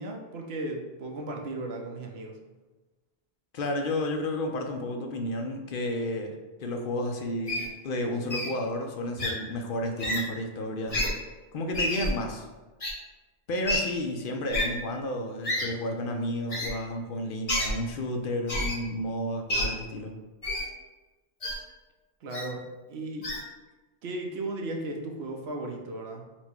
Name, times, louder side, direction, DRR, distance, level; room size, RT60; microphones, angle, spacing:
voice 1, 0.0-2.4 22.2-23.4 24.0-26.3, right 2 dB, 85° right, 2 dB, 0.9 m, -36 dB
voice 2, 3.5-6.3 6.6-11.0 11.5-12.5 13.5-20.2, left 1 dB, 65° left, 3 dB, 0.7 m, -32 dB
Wild animals, 7.5-7.7 8.3-8.5 9.2-9.3 10.0-10.2 10.9-11.1 11.7-12.1 12.8-12.9 13.7-13.8 14.5-14.7 15.4-15.7 16.5-16.7 17.5-17.7 18.5-18.8 19.5-19.7 20.4-20.7 21.4-21.5 22.3-22.5 23.2-23.4, left 1 dB, 35° left, 0.9 m, -28 dB
4.4 x 2.2 x 4.3 m, 1.2 s
omnidirectional pair, 1.0 m